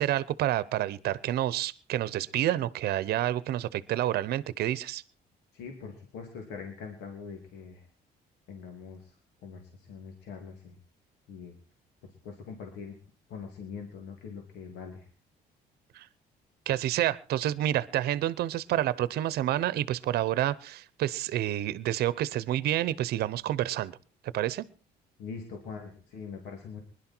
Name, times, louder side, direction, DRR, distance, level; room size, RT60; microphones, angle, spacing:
voice 1, 0.0-5.0 15.9-16.1 16.7-24.0 24.3-24.7, right 13 dB, 70° right, 19 dB, 0.8 m, -29 dB
voice 2, 5.5-7.9 8.5-9.2 9.4-10.8 11.3-11.5 12.2-12.9 13.3-15.1 25.2-26.8, left 5 dB, 85° left, 3 dB, 2.9 m, -43 dB
20.5 x 11.5 x 4.5 m, 0.37 s
cardioid pair, 110°, 17 cm